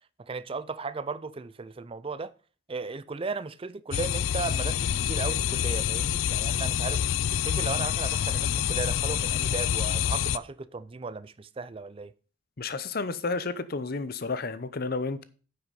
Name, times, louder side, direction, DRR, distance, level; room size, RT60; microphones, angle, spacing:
voice 1, 0.3-2.3 2.7-7.0 7.3-12.1, right 4 dB, 25° right, 0.4 m, -36 dB
sound 1, 3.9-10.4, left 9 dB, 75° left, 0.4 m, -27 dB
voice 2, 12.6-15.2, left 3 dB, 50° left, 0.7 m, -31 dB
9.7 x 5.7 x 5.2 m
head